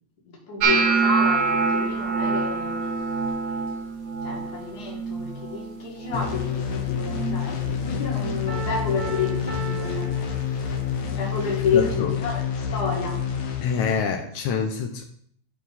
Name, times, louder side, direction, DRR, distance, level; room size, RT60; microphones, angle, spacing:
voice 1, 0.3-2.8 4.2-10.1 10.6-10.7 11.0-13.2, left 5 dB, 35° left, -2 dB, 2.1 m, -30 dB
sound 1, 0.6-6.7 7.0-7.5 7.8-8.4 9.0-9.2 11.0-11.1, right 4 dB, 65° right, 2.1 m, -26 dB
sound 2, 6.1-13.9, left 8 dB, 60° left, 1.4 m, -28 dB
Piano, 8.5-11.0, right 4 dB, 5° right, 1.7 m, -37 dB
voice 2, 11.7-12.1 13.6-15.0, left 6 dB, 80° left, 3 dB, 2.0 m, -26 dB
11.0 x 4.5 x 4.0 m, 0.63 s
omnidirectional pair, 3.4 m